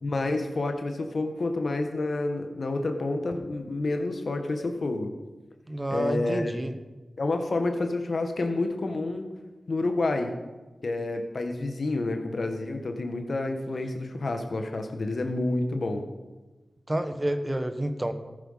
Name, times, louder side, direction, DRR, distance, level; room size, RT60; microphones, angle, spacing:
voice 1, 0.0-5.1 5.9-6.6 7.2-9.3 9.7-10.3 10.8-16.0, left 2 dB, 65° left, 5 dB, 1.5 m, -29 dB
voice 2, 5.7-6.7 16.9-18.1, right 1 dB, 25° right, 9 dB, 1.2 m, -29 dB
14.5 x 9.1 x 5.7 m, 1.2 s
cardioid pair, 45°, 0 cm